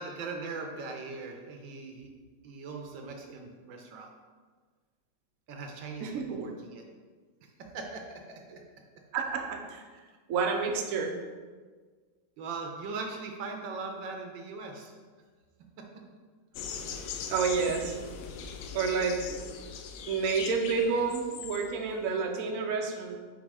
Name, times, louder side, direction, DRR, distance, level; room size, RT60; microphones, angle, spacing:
voice 1, 0.0-2.1 2.4-4.1 5.5-6.8 7.6-8.4 12.4-14.9 15.8-15.9, right 4 dB, 85° right, 3 dB, 1.5 m, -40 dB
voice 2, 6.0-6.5 9.1-9.8 10.3-11.1 17.3-18.0 18.7-19.4 20.1-23.2, right 5 dB, 65° right, 2 dB, 0.9 m, -29 dB
sound 1, 16.5-21.9, left 6 dB, 85° left, 0.7 m, -40 dB
5.3 x 3.9 x 4.8 m, 1.5 s
omnidirectional pair, 2.0 m